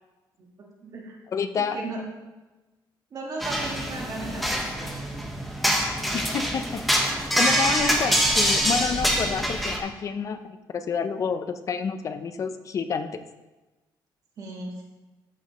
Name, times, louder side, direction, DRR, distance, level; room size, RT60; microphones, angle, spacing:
voice 1, 0.6-1.2 1.6-2.1 3.1-5.0 14.4-14.8, right 2 dB, 45° right, -1 dB, 1.6 m, -36 dB
voice 2, 1.3-1.8 6.1-7.1 7.3-13.1, left 6 dB, 40° left, 9 dB, 0.6 m, -29 dB
sound 1, 3.4-9.8, equal, ahead, 1.1 m, -25 dB
14.0 x 6.4 x 3.1 m, 1.1 s
cardioid pair, 145°, 8 cm